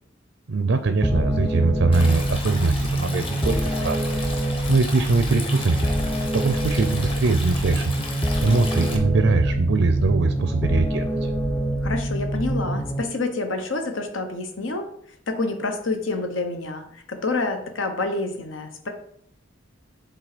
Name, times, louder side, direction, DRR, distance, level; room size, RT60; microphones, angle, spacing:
voice 1, 0.5-4.2 4.7-6.0 6.3-11.3, right 3 dB, 70° right, 9 dB, 0.5 m, -22 dB
sound 1, 1.0-13.0, right 1 dB, 10° left, 0.5 m, -25 dB
Stream, 1.9-9.0, left 2 dB, 30° left, 1.1 m, -35 dB
voice 2, 11.8-14.9 15.3-18.9, left 3 dB, 75° left, 5 dB, 1.1 m, -28 dB
7.5 x 3.8 x 5.0 m, 0.66 s
head